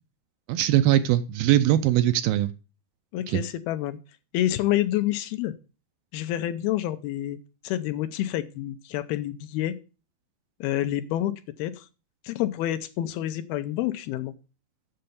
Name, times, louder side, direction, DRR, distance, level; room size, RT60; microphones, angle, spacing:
voice 1, 0.5-2.5 3.3-3.4, right 13 dB, 80° right, 11 dB, 2.3 m, -21 dB
voice 2, 3.1-4.0 4.3-5.5 6.1-7.4 7.6-9.7 10.6-11.3 11.6-11.9 12.2-14.3, left 13 dB, 80° left, 10 dB, 2.5 m, -28 dB
7.7 x 6.8 x 6.8 m, 0.33 s
omnidirectional pair, 4.6 m